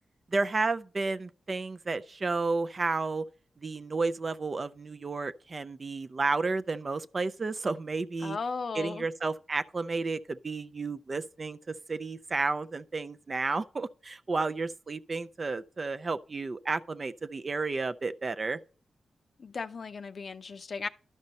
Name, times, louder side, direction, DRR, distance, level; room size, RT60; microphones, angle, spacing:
voice 1, 0.3-3.2 3.6-8.4 8.7-11.6 11.9-18.6, right 3 dB, 40° right, 0.4 m, -32 dB
voice 2, 8.2-9.1 19.4-20.9, left 4 dB, 55° left, 0.5 m, -36 dB
12.0 x 5.4 x 4.1 m
cardioid pair, 80°, 0 cm